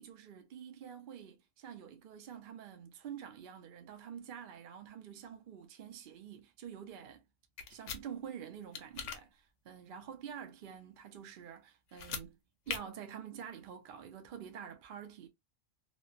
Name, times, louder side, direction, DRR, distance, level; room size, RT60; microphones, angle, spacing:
voice 1, 0.0-7.2 7.7-12.4 12.7-15.3, right 8 dB, 60° right, 0.6 m, -47 dB
sound 1, 7.6-8.0 8.7-9.2 11.9-12.3 12.7-12.8, left 6 dB, 85° left, 1.0 m, -40 dB
3.0 x 2.0 x 2.3 m
omnidirectional pair, 1.2 m